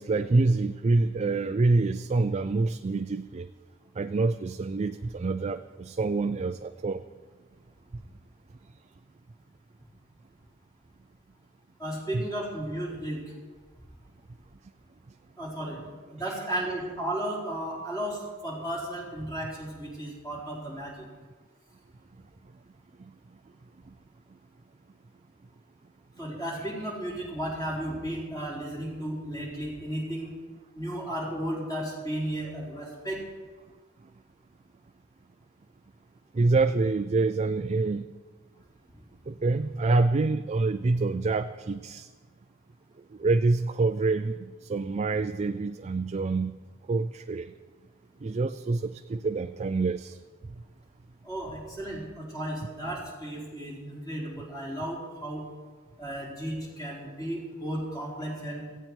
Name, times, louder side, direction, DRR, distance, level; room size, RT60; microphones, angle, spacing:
voice 1, 0.0-3.5 4.0-7.0 12.1-12.2 36.3-38.1 39.3-42.1 43.2-46.6 46.9-47.5 48.2-50.2, right 3 dB, 30° right, 8 dB, 0.4 m, -26 dB
voice 2, 11.8-13.2 15.4-15.8 16.1-20.9 26.2-30.3 30.7-33.2 51.2-55.4 56.0-58.6, right 1 dB, 15° left, -4 dB, 4.4 m, -34 dB
18.0 x 15.0 x 4.5 m, 1.4 s
head